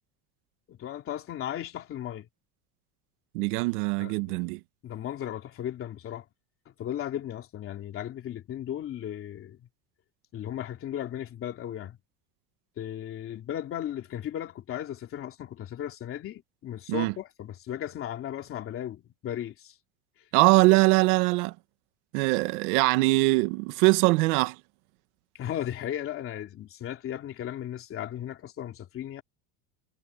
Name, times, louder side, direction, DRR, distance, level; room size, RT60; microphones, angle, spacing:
voice 1, 0.7-2.3 4.0-4.4 4.8-6.3 6.7-9.6 10.3-12.0 12.8-19.8 25.3-29.2, left 11 dB, 30° left, 2.9 m, -36 dB
voice 2, 3.3-4.6 16.9-17.1 20.3-21.5 22.1-24.6, right 23 dB, 75° right, 1.5 m, -22 dB
cardioid pair, 175°, 45 cm